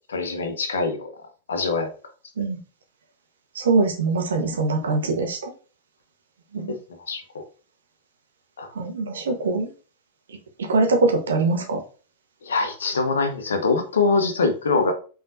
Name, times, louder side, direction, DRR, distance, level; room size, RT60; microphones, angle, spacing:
voice 1, 0.1-1.1 1.5-1.9 2.4-2.5 7.1-7.2 8.6-8.7 12.4-14.9, left 4 dB, 70° left, 6 dB, 1.0 m, -23 dB
voice 2, 3.5-5.5 6.5-6.7 8.7-9.7 10.6-11.8, right 3 dB, 65° right, 3 dB, 1.2 m, -22 dB
5.4 x 3.8 x 2.6 m, 0.36 s
figure-of-eight pair, 90°, 0 cm